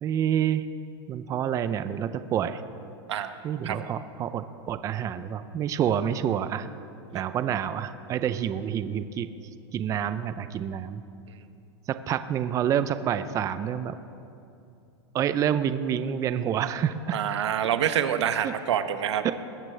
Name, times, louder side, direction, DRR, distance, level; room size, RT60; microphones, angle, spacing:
voice 1, 0.0-0.6 1.1-2.6 3.4-6.7 7.1-9.3 9.7-11.0 11.9-13.9 15.1-17.2 18.4-18.5 19.2-19.3, right 9 dB, 25° right, 12 dB, 0.4 m, -28 dB
voice 2, 17.1-19.2, right 9 dB, 90° right, 9 dB, 0.9 m, -26 dB
21.0 x 14.5 x 3.3 m, 2.6 s
supercardioid pair, 140°, 14 cm